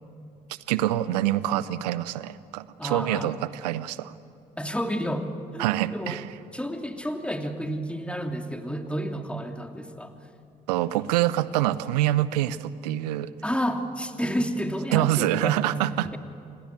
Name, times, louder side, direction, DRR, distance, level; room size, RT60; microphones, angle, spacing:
voice 1, 0.7-4.1 5.6-6.3 10.7-13.3 14.9-16.1, right 14 dB, 75° right, 17 dB, 0.8 m, -25 dB
voice 2, 2.8-3.3 4.6-5.7 5.9-6.2 6.5-10.1 13.4-15.8 16.0-16.2, equal, 5° left, 5 dB, 2.8 m, -30 dB
28.5 x 20.5 x 9.7 m, 2.5 s
figure-of-eight pair, 45°, 21 cm